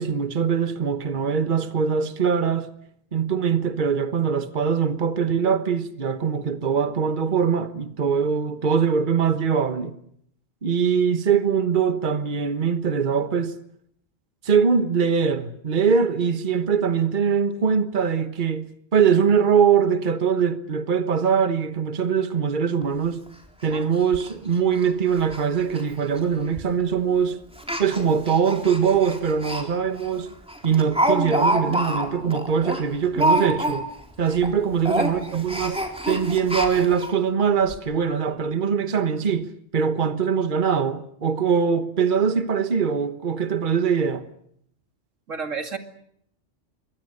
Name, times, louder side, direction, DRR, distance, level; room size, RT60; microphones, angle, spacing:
voice 1, 0.0-2.7 3.1-10.0 10.6-13.6 14.4-23.2 23.6-27.4 27.8-30.3 30.6-33.9 34.2-44.3, right 6 dB, 40° right, 1.4 m, -22 dB
Speech, 22.8-22.9 23.3-23.4 23.7-23.8 24.1-24.3 24.7-24.9 25.2-25.4 25.7-25.8 26.6-26.8 27.6-29.6 30.0-30.1 30.5-34.0 34.3-34.5 34.8-37.1 37.7-37.8 38.1-38.2, right 1 dB, 5° right, 4.0 m, -26 dB
voice 2, 35.0-35.4 45.3-45.8, right 5 dB, 90° right, 2.8 m, -32 dB
28.5 x 23.0 x 6.6 m
omnidirectional pair, 1.3 m